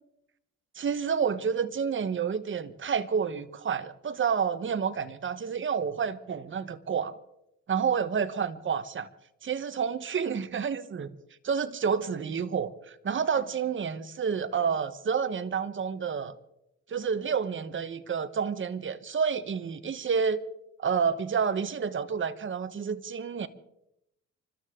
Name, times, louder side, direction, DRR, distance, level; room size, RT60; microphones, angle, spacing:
voice 1, 0.7-7.1 7.7-9.1 9.4-11.1 11.4-16.3 16.9-20.4 20.8-23.5, right 6 dB, 40° right, 1.2 m, -29 dB
28.5 x 13.0 x 3.8 m
cardioid pair, 90°, 30 cm